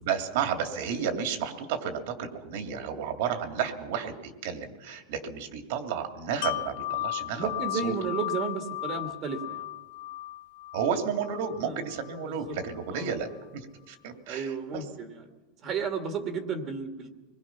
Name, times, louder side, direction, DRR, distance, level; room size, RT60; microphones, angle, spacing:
voice 1, 0.0-7.5 7.8-7.9 10.7-14.5 14.7-14.8, right 7 dB, 60° right, 6 dB, 2.6 m, -32 dB
voice 2, 3.4-3.7 7.3-9.7 11.6-11.8 12.2-12.6 12.9-13.1 14.3-15.3 15.6-17.1, right 5 dB, 30° right, 6 dB, 1.8 m, -33 dB
Wind chime, 6.4-12.2 12.6-12.7, left 15 dB, 60° left, 0.6 m, -35 dB
25.0 x 21.0 x 5.9 m, 1.2 s
supercardioid pair, 160°, 0 cm